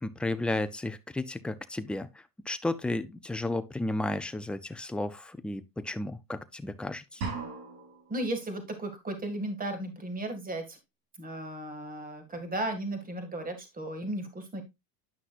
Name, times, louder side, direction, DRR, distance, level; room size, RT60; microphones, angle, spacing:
voice 1, 0.0-7.2, left 2 dB, 5° left, 0.4 m, -33 dB
sound 1, 7.2-8.2, right 4 dB, 85° right, 3.7 m, -37 dB
voice 2, 8.1-10.8 11.2-14.6, right 1 dB, 20° right, 2.1 m, -35 dB
10.0 x 5.9 x 2.5 m
supercardioid pair, 110°, 44 cm